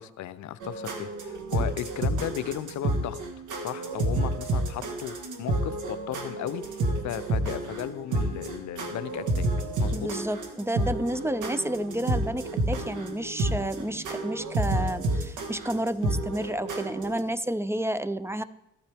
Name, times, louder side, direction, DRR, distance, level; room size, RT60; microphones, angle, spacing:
voice 1, 0.0-3.2 3.6-9.5 9.8-10.1, left 12 dB, 70° left, 15 dB, 0.6 m, -35 dB
sound 1, 0.6-17.2, right 1 dB, 80° right, 1.7 m, -30 dB
voice 2, 9.9-18.4, right 1 dB, 10° right, 15 dB, 0.4 m, -30 dB
14.0 x 10.0 x 3.5 m, 0.86 s
cardioid pair, 90°, 30 cm